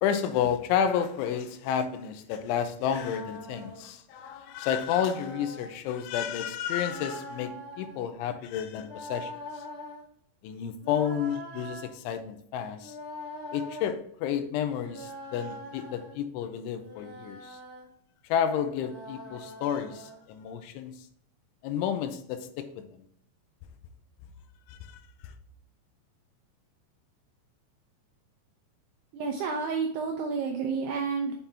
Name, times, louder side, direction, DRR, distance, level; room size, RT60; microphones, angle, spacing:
voice 1, 0.0-9.7 10.4-13.0 13.5-17.6 18.3-20.9 21.6-22.9 24.7-25.3, left 8 dB, 85° left, 9 dB, 3.1 m, -31 dB
sound 1, 2.8-3.9 4.8-5.7 6.8-8.0 8.8-10.0 10.8-11.9 12.8-13.9 14.8-16.2 16.8-17.8 18.8-20.2, equal, 15° left, 0.9 m, -43 dB
voice 2, 29.1-31.3, right 5 dB, 80° right, 2 dB, 2.4 m, -30 dB
7.6 x 5.6 x 3.4 m, 0.66 s
omnidirectional pair, 5.4 m